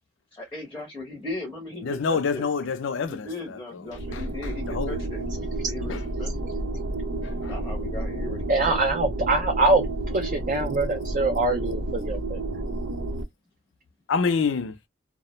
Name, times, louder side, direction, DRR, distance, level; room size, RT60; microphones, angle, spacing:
voice 1, 0.3-2.5 3.1-5.2 5.7-6.5 7.5-8.8, left 2 dB, 10° left, 0.6 m, -37 dB
voice 2, 1.8-3.8 4.1-4.2 4.7-5.0 5.9-6.0 7.4-7.5 14.1-14.8, left 5 dB, 80° left, 0.4 m, -27 dB
sound 1, 3.9-13.2, right 2 dB, 85° right, 0.6 m, -31 dB
voice 3, 8.5-12.4, right 2 dB, 40° right, 0.4 m, -24 dB
2.3 x 2.0 x 2.8 m
head